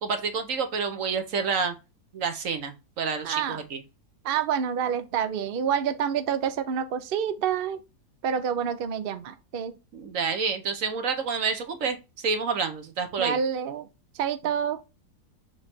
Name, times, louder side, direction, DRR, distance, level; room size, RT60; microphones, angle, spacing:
voice 1, 0.0-1.7 2.1-3.8 9.9-13.4, right 5 dB, 55° right, 1.3 m, -28 dB
voice 2, 3.2-3.6 4.2-7.8 8.2-9.7 13.2-13.9 14.2-14.8, right 8 dB, 70° right, 0.5 m, -27 dB
6.8 x 3.3 x 4.3 m
omnidirectional pair, 1.8 m